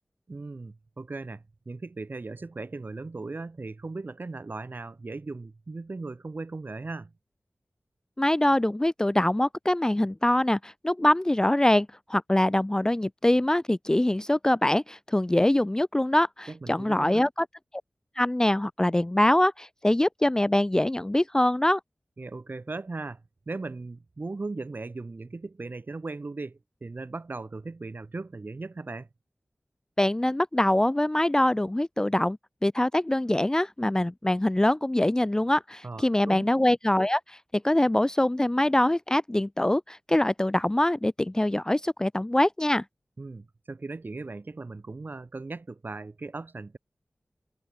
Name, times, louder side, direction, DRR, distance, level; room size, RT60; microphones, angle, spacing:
voice 1, 0.3-7.1 16.5-17.2 22.2-29.1 35.8-36.5 43.2-46.8, right 3 dB, 55° right, 5.1 m, -38 dB
voice 2, 8.2-17.5 18.2-21.8 30.0-32.4 32.6-42.8, left 1 dB, 15° left, 0.4 m, -24 dB
wide cardioid pair, 80°, 4 cm